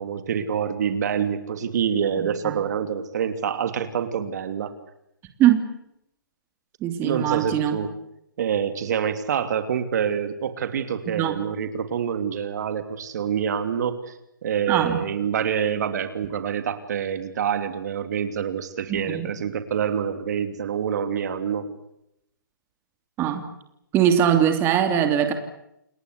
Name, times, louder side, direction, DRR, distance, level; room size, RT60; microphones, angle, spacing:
voice 1, 0.0-4.7 7.0-7.9 8.4-14.1 14.4-21.8, right 8 dB, 55° right, 9 dB, 3.0 m, -26 dB
voice 2, 6.8-7.8 11.1-11.3 14.7-15.0 18.9-19.3 23.2-23.5 23.9-25.3, right 10 dB, 20° right, 7 dB, 2.9 m, -21 dB
29.0 x 20.0 x 8.4 m, 0.79 s
hypercardioid pair, 145°, 11 cm